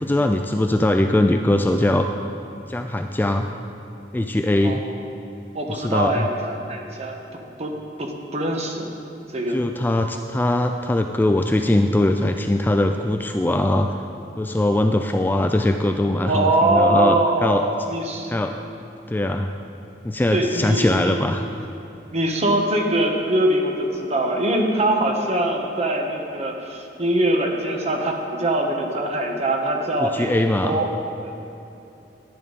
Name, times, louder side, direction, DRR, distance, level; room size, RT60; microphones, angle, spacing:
voice 1, 0.0-2.1 2.7-3.5 4.1-4.8 5.8-6.3 9.5-13.9 14.4-17.6 18.3-18.6 19.1-19.5 20.0-21.4 30.0-30.8, left 1 dB, 10° left, 5 dB, 0.3 m, -21 dB
voice 2, 5.5-7.2 7.6-8.9 9.3-9.6 16.3-18.3 20.3-21.2 22.1-30.9 31.2-31.3, right 1 dB, 40° right, 2 dB, 1.2 m, -23 dB
11.0 x 10.5 x 4.0 m, 2.9 s
head